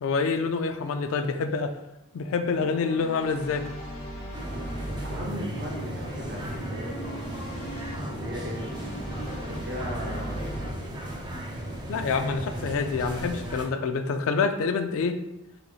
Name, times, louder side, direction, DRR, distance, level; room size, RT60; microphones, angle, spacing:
voice 1, 0.0-1.7 2.1-3.7 11.9-15.2, left 4 dB, 70° left, 8 dB, 0.3 m, -27 dB
sound 1, 2.5-10.7, equal, 25° left, 0.6 m, -38 dB
sound 2, 4.3-13.7, right 1 dB, 20° right, 0.4 m, -36 dB
voice 2, 4.9-7.3 8.1-10.7, equal, 50° right, -1 dB, 0.8 m, -38 dB
4.0 x 3.0 x 2.3 m, 0.91 s
head